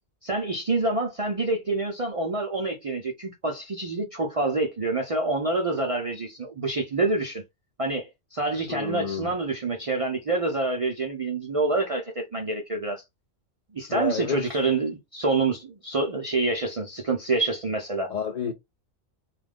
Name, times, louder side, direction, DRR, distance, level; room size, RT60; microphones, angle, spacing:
voice 1, 0.2-7.4 7.8-13.0 13.7-18.1, right 3 dB, 55° right, 0.4 m, -27 dB
voice 2, 8.7-9.3 13.9-14.5 18.1-18.5, left 6 dB, 75° left, 0.4 m, -29 dB
2.4 x 2.2 x 3.3 m
omnidirectional pair, 1.3 m